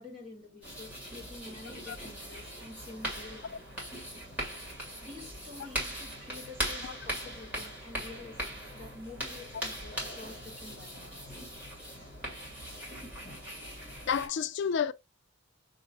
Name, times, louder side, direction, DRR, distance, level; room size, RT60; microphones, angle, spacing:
voice 1, 0.0-3.9 5.0-11.4, left 2 dB, 25° right, 2.1 m, -48 dB
sound 1, 0.6-14.3, equal, 5° right, 2.4 m, -40 dB
voice 2, 14.1-14.9, left 7 dB, 55° left, 0.3 m, -30 dB
6.5 x 2.8 x 2.3 m
head